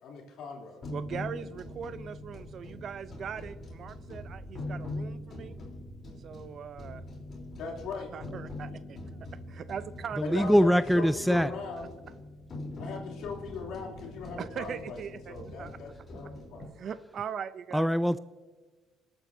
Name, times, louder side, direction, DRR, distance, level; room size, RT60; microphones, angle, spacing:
voice 1, 0.0-0.8 7.6-8.1 10.2-11.9 12.8-16.7, left 5 dB, 70° left, 0 dB, 3.1 m, -39 dB
sound 1, 0.8-16.6, left 2 dB, 45° left, 3.6 m, -43 dB
voice 2, 0.9-5.6 6.2-7.0 8.1-10.5 14.4-15.8 16.6-17.9, right 7 dB, 55° right, 15 dB, 0.5 m, -40 dB
Wind, 1.5-8.7, right 2 dB, 40° right, 1.2 m, -55 dB
voice 3, 10.2-11.5 17.7-18.2, equal, ahead, 14 dB, 0.3 m, -23 dB
26.0 x 8.9 x 2.7 m, 1.4 s
supercardioid pair, 75°, 0 cm